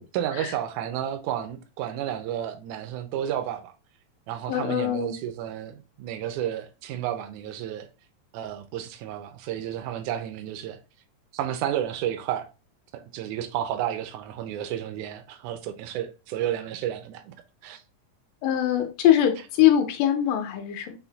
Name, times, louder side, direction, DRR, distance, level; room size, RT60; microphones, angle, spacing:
voice 1, 0.1-3.7 4.3-7.9 8.3-10.8 11.3-12.5 12.9-17.3 17.6-17.8, right 11 dB, 85° right, 1.7 m, -31 dB
voice 2, 4.5-5.1 18.4-20.9, left 11 dB, 80° left, 2.4 m, -22 dB
5.7 x 2.1 x 3.8 m
omnidirectional pair, 4.0 m